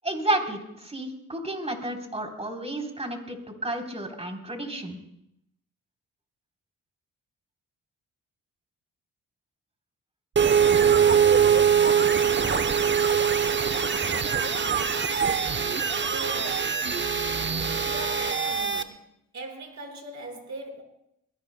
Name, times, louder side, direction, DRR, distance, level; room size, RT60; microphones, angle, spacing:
voice 1, 0.0-3.4 3.6-5.0, right 1 dB, 15° right, 3.6 m, -31 dB
sound 1, 10.4-18.8, right 7 dB, 30° right, 0.9 m, -23 dB
voice 2, 14.6-15.6 16.1-17.3 17.8-19.1 19.3-20.8, right 2 dB, 55° right, 5.2 m, -41 dB
22.0 x 17.0 x 2.2 m
supercardioid pair, 60°, 35 cm